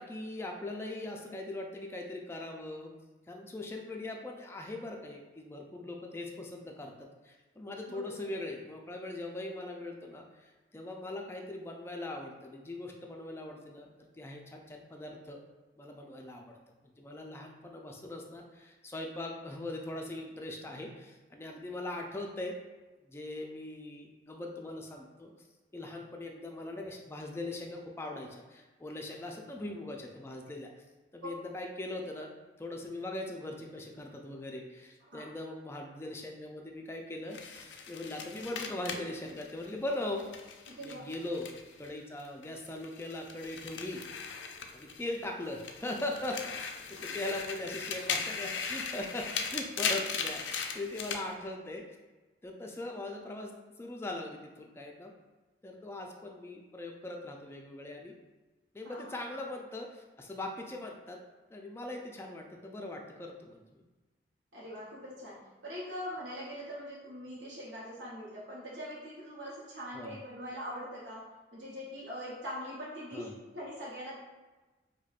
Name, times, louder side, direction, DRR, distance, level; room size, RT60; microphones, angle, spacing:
voice 1, 0.0-2.9 3.3-15.4 15.8-22.6 23.0-25.3 25.7-30.8 31.1-32.3 32.6-40.3 40.8-41.5 41.8-44.0 44.7-51.9 52.4-55.1 55.6-58.1 58.7-61.2 61.5-63.8 69.9-70.2 73.1-73.3, left 2 dB, 15° left, 1 dB, 0.3 m, -40 dB
sound 1, 37.3-41.9 42.2-45.2 45.5-51.2, left 6 dB, 85° left, 0.4 m, -38 dB
voice 2, 40.7-41.0 58.8-59.1 64.5-71.2 71.5-74.2, equal, 90° right, -7 dB, 0.7 m, -42 dB
4.9 x 2.1 x 2.4 m, 1.2 s
head